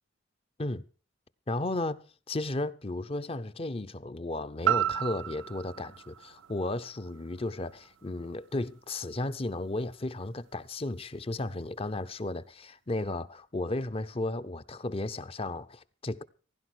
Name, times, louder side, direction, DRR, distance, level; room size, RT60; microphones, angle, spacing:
voice 1, 1.5-2.0 2.3-16.2, left 2 dB, 30° left, 0.7 m, -34 dB
sound 1, 4.6-8.7 9.2-9.3, right 11 dB, 80° right, 0.6 m, -33 dB
16.0 x 11.5 x 6.2 m
head